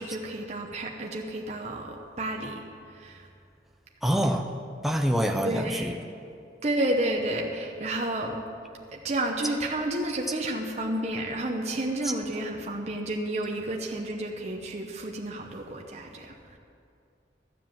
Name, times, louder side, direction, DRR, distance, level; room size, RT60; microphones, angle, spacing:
voice 1, 0.0-2.6 2.9-3.3 5.4-5.9 6.6-8.4 8.9-16.6, right 1 dB, 40° right, 1 dB, 0.9 m, -31 dB
voice 2, 4.0-4.5 4.8-6.0 12.0-12.1, equal, ahead, 3 dB, 0.6 m, -26 dB
13.0 x 7.4 x 7.5 m, 2.4 s
head